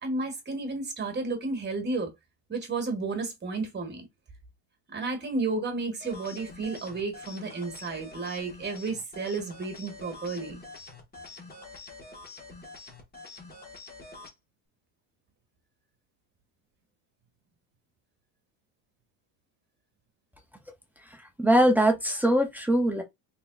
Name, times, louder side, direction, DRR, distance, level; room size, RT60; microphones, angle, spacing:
voice 1, 0.0-2.1 2.5-4.1 4.9-10.6, right 3 dB, 20° right, 1.6 m, -32 dB
sound 1, 6.0-14.3, left 3 dB, 20° left, 1.3 m, -46 dB
voice 2, 21.4-23.0, right 1 dB, 5° right, 0.5 m, -22 dB
4.1 x 3.6 x 2.3 m
cardioid pair, 130°, 45 cm